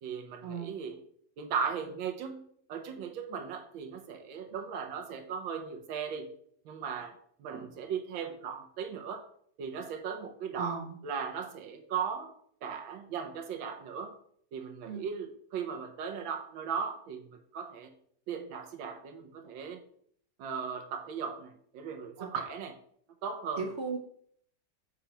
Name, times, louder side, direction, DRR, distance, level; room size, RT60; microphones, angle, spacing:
voice 1, 0.0-1.0 1.4-6.3 6.6-9.2 9.6-12.3 12.6-14.1 14.5-17.9 18.3-19.8 20.4-22.8 23.2-23.7, right 6 dB, 80° right, 5 dB, 1.5 m, -37 dB
voice 2, 10.5-11.0 14.9-15.1 22.2-22.3 23.6-24.0, right 5 dB, 60° right, 3 dB, 0.6 m, -36 dB
6.8 x 2.9 x 5.0 m, 0.64 s
omnidirectional pair, 2.1 m